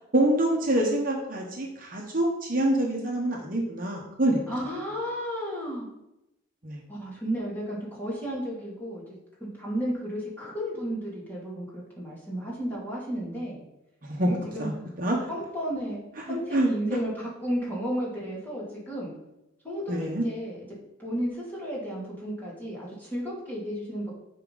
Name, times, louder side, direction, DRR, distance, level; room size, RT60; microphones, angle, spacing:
voice 1, 0.1-4.4 6.6-6.8 14.0-14.3 14.6-14.7 15.0-15.2 16.3-16.7 19.9-20.2, right 1 dB, 45° right, 0 dB, 1.1 m, -26 dB
voice 2, 4.5-5.9 6.9-9.1 9.4-13.6 14.3-14.7 15.3-19.1 19.6-20.6 21.0-24.1, equal, 10° left, -6 dB, 2.5 m, -33 dB
9.6 x 4.8 x 4.0 m, 0.87 s
head